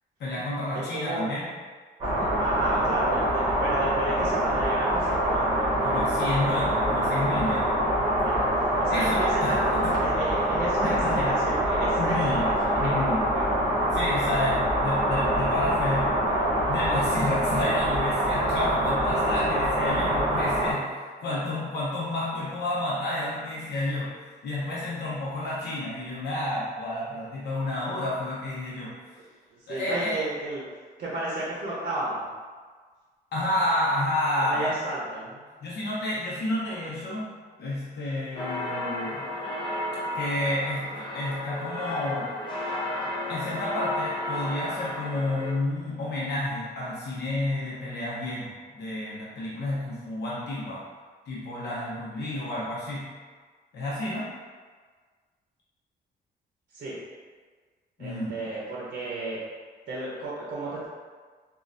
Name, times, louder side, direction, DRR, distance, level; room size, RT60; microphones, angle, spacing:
voice 1, 0.2-1.5 5.8-7.7 8.9-10.0 10.8-11.4 12.0-12.5 12.8-13.3 13.9-16.1 16.7-24.2 24.4-28.9 29.7-30.2 33.3-34.7 35.6-39.2 40.1-42.3 43.3-50.8 51.3-53.1 53.7-54.3 58.0-58.3, left 1 dB, 75° left, -7 dB, 0.8 m, -30 dB
voice 2, 0.7-1.2 2.1-5.7 8.2-8.3 8.8-9.6 10.0-13.4 21.3-21.4 29.5-30.6 31.0-32.3 34.4-35.4 56.7-57.0 58.0-59.4 59.9-60.9, right 1 dB, 55° right, -6 dB, 0.6 m, -32 dB
sound 1, 2.0-20.7, right 1 dB, 30° right, 1.0 m, -25 dB
sound 2, 38.4-45.5, left 1 dB, 30° left, 0.5 m, -33 dB
3.1 x 2.3 x 2.5 m, 1.5 s
cardioid pair, 140°, 17 cm